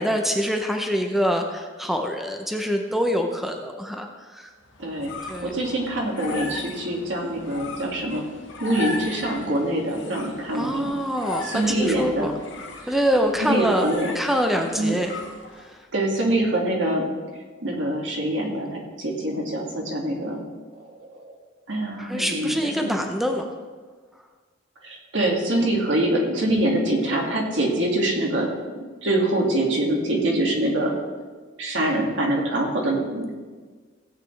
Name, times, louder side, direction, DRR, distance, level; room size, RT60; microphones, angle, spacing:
voice 1, 0.0-4.5 5.3-5.5 10.5-12.3 12.9-13.9 14.1-15.2 15.6-15.8 22.0-23.5, equal, ahead, 3 dB, 0.7 m, -25 dB
sound 1, 4.6-15.8, left 3 dB, 75° left, 1.5 m, -37 dB
voice 2, 4.8-8.2 8.6-10.9 11.4-12.3 12.8-13.0 13.4-14.1 14.8-14.9 15.9-17.1 17.6-20.4 21.1-21.3 21.7-22.9 24.8-28.5 29.0-30.9 31.6-33.3, right 1 dB, 75° right, -1 dB, 2.4 m, -24 dB
16.0 x 8.4 x 3.4 m, 1.4 s
head